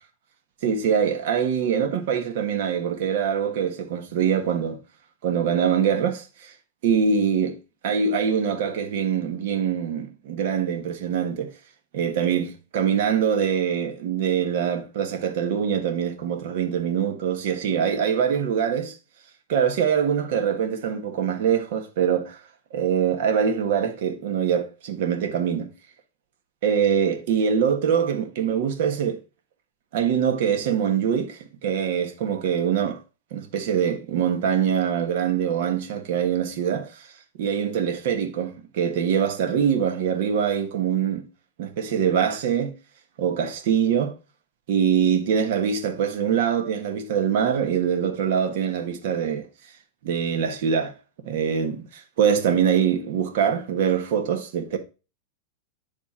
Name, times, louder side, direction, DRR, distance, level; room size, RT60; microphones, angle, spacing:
voice 1, 0.6-4.8 5.2-6.5 6.8-7.6 7.8-11.5 11.9-19.0 19.5-22.4 22.7-25.7 26.6-29.2 29.9-33.0 33.3-37.1 37.4-41.2 41.6-42.7 43.2-44.1 44.7-49.5 50.0-50.9 51.2-54.8, right 8 dB, 60° right, 1.5 m, -24 dB
10.0 x 3.5 x 4.3 m
supercardioid pair, 150°, 0 cm